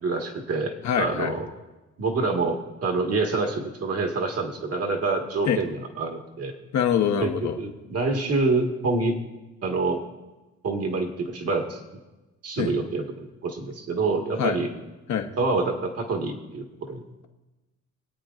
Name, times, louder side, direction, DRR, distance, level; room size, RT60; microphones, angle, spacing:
voice 1, 0.0-1.5 2.0-6.5 7.2-9.2 9.6-10.0 10.6-11.8 12.4-14.7 15.4-17.0, right 3 dB, 50° right, 2 dB, 1.7 m, -27 dB
voice 2, 0.8-1.3 5.5-5.6 6.7-7.6 12.6-12.7 14.4-14.6 15.1-15.3, left 8 dB, 65° left, 5 dB, 1.1 m, -24 dB
24.0 x 8.6 x 2.5 m, 1.1 s
cardioid pair, 90°, 30 cm